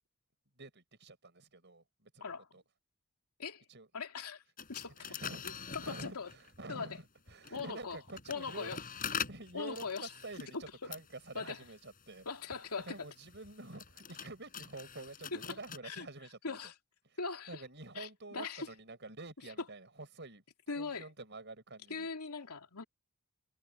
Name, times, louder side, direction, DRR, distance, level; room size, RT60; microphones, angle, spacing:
voice 1, 0.6-2.6 3.7-3.9 5.0-8.8 9.3-12.3 12.8-16.6 17.1-17.2 17.5-20.4 20.8-22.1, right 2 dB, 50° right, 7.1 m, -48 dB
voice 2, 3.9-4.4 4.7-5.2 5.4-6.3 6.7-7.0 7.5-8.0 8.3-8.8 9.5-10.1 10.5-10.9 11.3-11.6 12.3-13.1 15.3-15.6 15.8-16.1 16.4-16.7 17.2-17.6 17.9-18.7 20.7-21.1 21.9-22.8, left 4 dB, 90° left, 2.7 m, -40 dB
sound 1, 4.6-6.6 7.3-15.8, left 7 dB, 40° left, 6.6 m, -45 dB
head